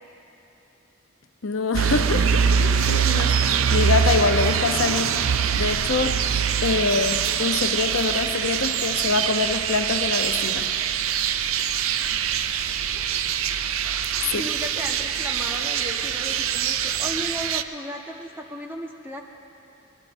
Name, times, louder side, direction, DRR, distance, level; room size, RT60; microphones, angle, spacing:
voice 1, 1.4-5.2 5.5-6.2 6.6-10.7 14.3-14.4, left 4 dB, 75° left, 7 dB, 0.8 m, -25 dB
sound 1, 1.7-17.6, right 7 dB, 85° right, 0.5 m, -23 dB
voice 2, 12.7-13.0 14.3-19.2, equal, 10° right, 0 dB, 1.3 m, -35 dB
24.0 x 21.0 x 2.7 m, 3.0 s
head